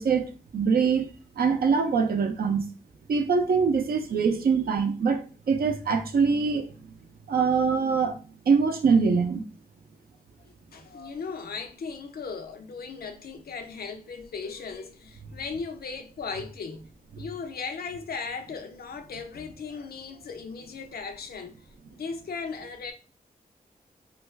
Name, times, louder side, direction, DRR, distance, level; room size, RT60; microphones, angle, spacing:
voice 1, 0.0-2.6 3.1-5.2 5.5-6.7 7.3-8.2 8.5-9.4, right 5 dB, 80° right, 0.5 m, -23 dB
voice 2, 10.4-16.8 17.2-21.5 21.9-22.9, left 5 dB, 85° left, 0.5 m, -37 dB
2.5 x 2.3 x 3.1 m
wide cardioid pair, 85°, 15 cm